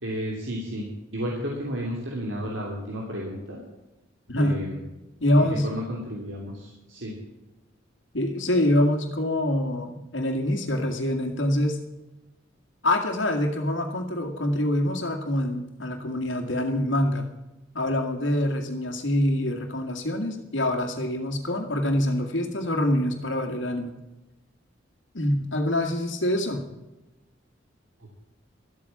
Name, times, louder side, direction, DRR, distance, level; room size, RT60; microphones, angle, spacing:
voice 1, 0.0-0.9 1.1-3.6 4.4-4.8 5.4-7.1, equal, 75° right, -2 dB, 3.1 m, -32 dB
voice 2, 4.3-4.6 5.2-5.7 8.1-11.8 12.8-17.3 17.7-24.0 25.1-26.6, left 1 dB, 75° left, 3 dB, 2.0 m, -25 dB
13.5 x 8.5 x 8.5 m, 1.0 s
head